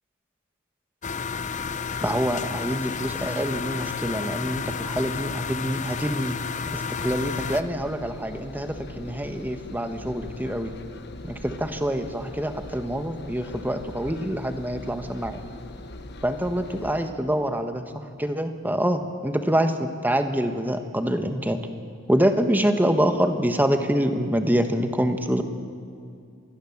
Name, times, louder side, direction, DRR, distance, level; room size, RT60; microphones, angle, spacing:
sound 1, 1.0-7.6, left 5 dB, 35° left, 0.8 m, -31 dB
voice 1, 2.0-6.4 6.7-10.7 11.2-15.4 16.2-21.6 22.1-25.4, equal, 10° right, 7 dB, 1.3 m, -26 dB
Engine, 6.9-17.1, left 2 dB, 55° left, 1.4 m, -41 dB
26.5 x 20.5 x 7.3 m, 2.4 s
head